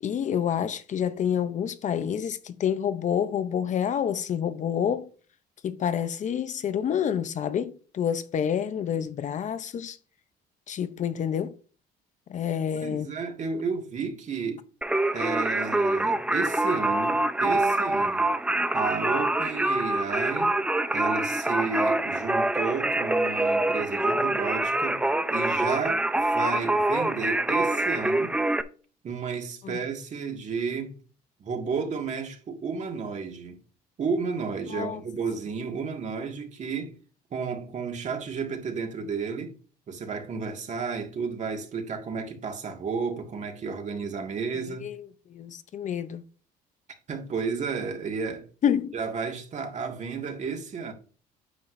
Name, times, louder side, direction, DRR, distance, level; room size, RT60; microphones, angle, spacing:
voice 1, 0.0-5.1 5.6-10.0 10.7-11.6 12.3-13.1 29.6-29.8 34.7-35.0 44.8-45.0 45.3-46.2 48.6-48.9, left 8 dB, 45° left, 0.7 m, -28 dB
voice 2, 12.7-14.6 15.1-18.3 18.7-20.6 20.9-25.0 25.3-28.4 29.0-30.9 31.4-33.6 34.0-36.9 37.3-39.5 39.9-44.9 47.1-48.4 48.9-50.9, right 5 dB, 45° right, 1.9 m, -32 dB
Singing, 14.8-28.6, right 2 dB, 5° right, 0.6 m, -25 dB
9.3 x 7.6 x 2.6 m
cardioid pair, 110°, 17 cm